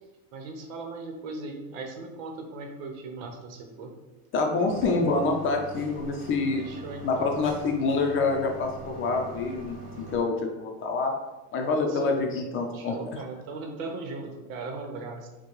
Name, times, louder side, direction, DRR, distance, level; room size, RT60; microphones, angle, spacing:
voice 1, 0.3-3.9 6.5-7.3 11.9-12.1 12.7-15.3, right 3 dB, 80° right, 3 dB, 1.0 m, -38 dB
voice 2, 4.3-6.6 7.0-11.1 11.5-12.9, left 3 dB, 30° left, 2 dB, 0.5 m, -26 dB
sound 1, 4.7-10.2, right 3 dB, 20° right, 1.5 m, -42 dB
6.1 x 2.3 x 3.0 m, 1.1 s
cardioid pair, 145°, 39 cm